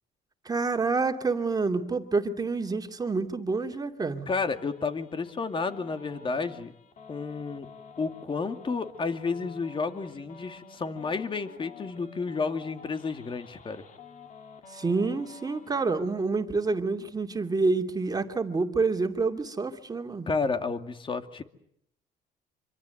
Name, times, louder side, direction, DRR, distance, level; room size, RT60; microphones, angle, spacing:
voice 1, 0.4-4.3 14.7-20.3, right 4 dB, 20° right, 4 dB, 2.6 m, -28 dB
sound 1, 4.3-15.9, left 5 dB, 50° left, 3.9 m, -50 dB
voice 2, 4.3-6.7 7.1-7.7 8.0-13.8 20.3-21.4, left 4 dB, 30° left, 8 dB, 2.4 m, -31 dB
26.0 x 25.0 x 8.0 m, 0.71 s
cardioid pair, 110°, 17 cm